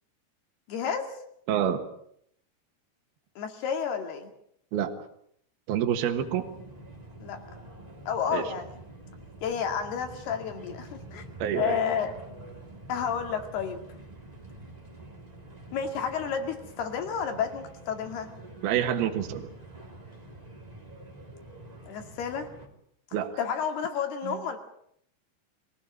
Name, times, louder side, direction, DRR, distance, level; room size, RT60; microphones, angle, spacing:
voice 1, 0.7-1.1 3.4-4.3 7.2-7.4 8.1-8.7 9.4-11.2 11.6-12.2 12.9-13.8 15.7-18.3 21.9-22.5 23.4-24.6, left 7 dB, 70° left, 5 dB, 4.1 m, -31 dB
voice 2, 1.5-1.8 4.7-4.9 5.7-6.5 8.3-8.5 11.4-11.8 18.6-19.5 23.1-23.3 24.2-24.4, right 9 dB, 65° right, 5 dB, 3.2 m, -27 dB
sound 1, 6.1-22.7, right 2 dB, 10° right, 2.2 m, -47 dB
23.0 x 17.0 x 8.8 m, 0.70 s
omnidirectional pair, 5.0 m